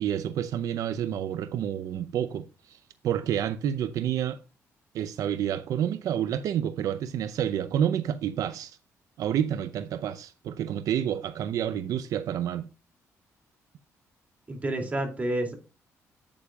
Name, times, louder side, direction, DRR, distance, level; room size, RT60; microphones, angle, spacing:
voice 1, 0.0-2.8 3.0-4.4 4.9-8.8 9.2-12.7, right 10 dB, 80° right, 0.6 m, -29 dB
voice 2, 14.5-15.5, right 1 dB, 25° right, 2.6 m, -29 dB
8.7 x 8.5 x 2.3 m
cardioid pair, 110°, 6 cm